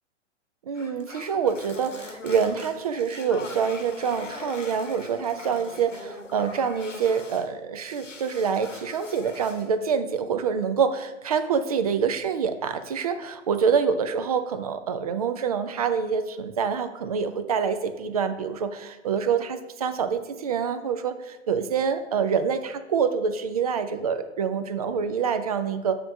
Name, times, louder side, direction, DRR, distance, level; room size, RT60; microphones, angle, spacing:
sound 1, 0.7-7.5 7.8-9.7, left 3 dB, 85° left, 0.9 m, -42 dB
voice 1, 0.7-26.0, right 6 dB, 35° right, 10 dB, 0.4 m, -26 dB
8.7 x 3.0 x 5.0 m, 1.1 s
figure-of-eight pair, 115°, 36 cm